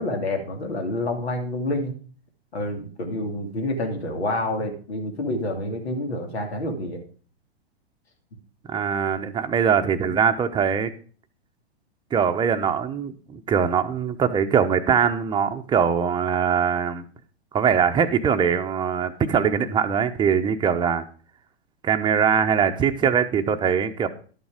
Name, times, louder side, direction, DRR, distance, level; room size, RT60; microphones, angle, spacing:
voice 1, 0.0-1.9 2.5-7.0, left 1 dB, 75° left, 4 dB, 2.9 m, -28 dB
voice 2, 8.7-10.9 12.1-17.0 17.5-21.0 21.8-24.1, right 7 dB, 15° right, 6 dB, 0.8 m, -22 dB
11.5 x 7.1 x 5.0 m, 0.41 s
hypercardioid pair, 115°, 32 cm